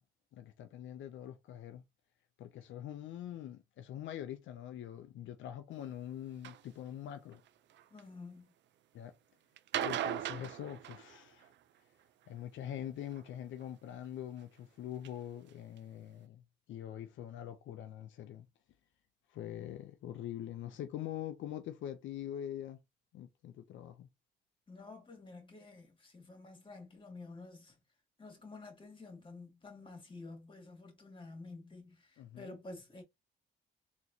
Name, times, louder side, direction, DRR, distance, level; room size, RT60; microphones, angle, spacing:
voice 1, 0.3-1.8 2.4-7.4 8.9-9.1 9.7-11.5 12.3-16.4 16.7-18.5 19.3-22.8 23.1-24.1 32.2-32.6, left 11 dB, 75° left, 0.5 m, -44 dB
sound 1, 6.4-6.6 7.3-8.0 9.6-11.5 13.1-13.7 14.4-14.5 15.0-15.1 15.5-15.6 15.8-15.9, right 11 dB, 65° right, 0.5 m, -38 dB
voice 2, 7.9-8.5 24.7-27.7 28.2-33.0, left 3 dB, 25° left, 2.1 m, -50 dB
4.0 x 3.0 x 2.7 m
cardioid pair, 90°, 20 cm